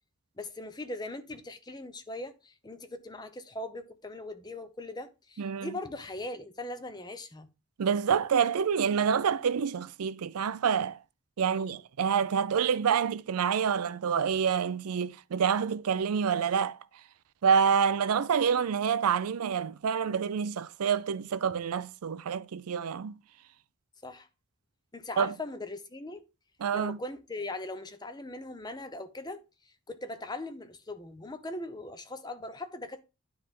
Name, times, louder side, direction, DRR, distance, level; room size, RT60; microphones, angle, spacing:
voice 1, 0.4-7.5 11.4-11.8 24.0-24.3 24.9-26.2 26.7-33.0, left 2 dB, 20° left, 0.7 m, -40 dB
voice 2, 5.4-5.7 7.8-11.0 11.4-16.8 17.4-23.2 25.2-25.3 26.6-27.0, right 7 dB, 80° right, 0.4 m, -27 dB
9.7 x 3.4 x 5.3 m
head